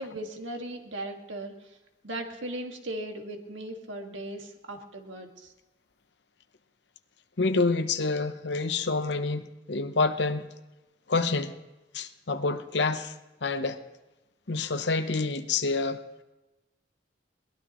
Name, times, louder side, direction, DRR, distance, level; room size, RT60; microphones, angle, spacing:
voice 1, 0.0-1.5 2.0-5.5, right 1 dB, 90° right, 3 dB, 2.0 m, -37 dB
voice 2, 7.4-10.5 11.1-11.5 11.9-13.1 13.4-13.8 14.5-16.0, left 3 dB, 70° left, 10 dB, 0.9 m, -27 dB
22.0 x 19.0 x 3.1 m, 1.0 s
head